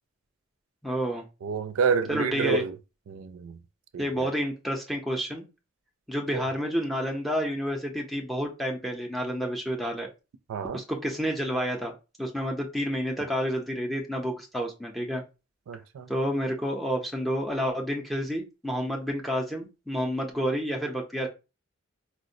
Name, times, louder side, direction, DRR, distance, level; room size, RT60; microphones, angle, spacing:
voice 1, 0.8-1.2 2.1-2.6 4.0-5.5 6.1-10.1 10.7-11.9 12.2-15.2 16.1-21.3, equal, ahead, 0.5 m, -29 dB
voice 2, 1.4-2.7 3.1-3.6 3.9-4.3 6.3-6.4 10.5-10.8 15.7-16.1, right 5 dB, 80° right, 0.3 m, -29 dB
4.2 x 2.0 x 2.6 m
head